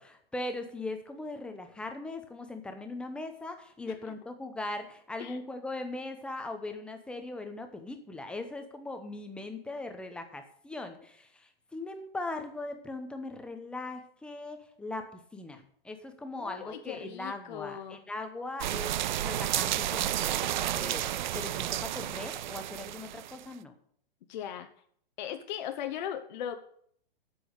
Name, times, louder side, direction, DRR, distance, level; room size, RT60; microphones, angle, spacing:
voice 1, 0.0-21.0 21.3-23.8, left 2 dB, 5° left, 6 dB, 0.8 m, -40 dB
voice 2, 16.4-18.0 24.3-24.7 25.2-26.6, left 10 dB, 50° left, 7 dB, 0.9 m, -38 dB
sound 1, 18.6-23.4, right 13 dB, 55° right, 0.5 m, -31 dB
8.2 x 6.2 x 8.0 m, 0.63 s
hypercardioid pair, 145°, 29 cm